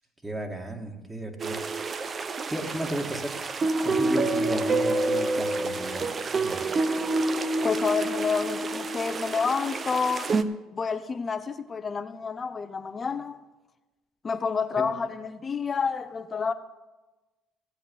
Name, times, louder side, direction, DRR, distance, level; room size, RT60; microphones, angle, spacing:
voice 1, 0.2-1.6 2.5-3.4 3.8-6.7 14.8-14.9, right 1 dB, 15° right, 2 dB, 2.1 m, -34 dB
sound 1, 1.4-10.4, right 2 dB, 35° right, 0.7 m, -28 dB
voice 2, 7.6-10.3 10.7-13.4 14.2-16.5, left 5 dB, 35° left, 11 dB, 0.8 m, -29 dB
16.0 x 8.1 x 5.5 m, 1.1 s
supercardioid pair, 70°, 0 cm